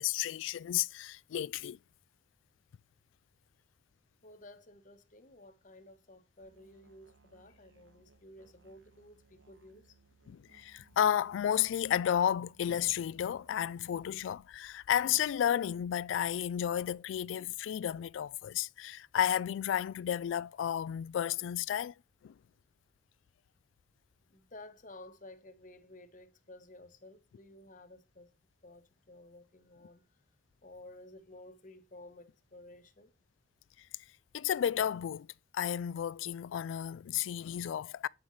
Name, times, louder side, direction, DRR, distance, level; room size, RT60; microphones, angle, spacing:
voice 1, 0.0-1.8 10.3-21.9 22.2-22.3 34.3-35.3 35.5-38.1, left 10 dB, 85° left, 0.3 m, -32 dB
voice 2, 4.2-10.0 24.3-28.3 28.6-30.0 30.6-33.1, left 1 dB, 45° left, 1.0 m, -54 dB
Musical instrument, 6.4-14.4, right 4 dB, 80° right, 1.1 m, -65 dB
8.6 x 5.6 x 3.1 m
head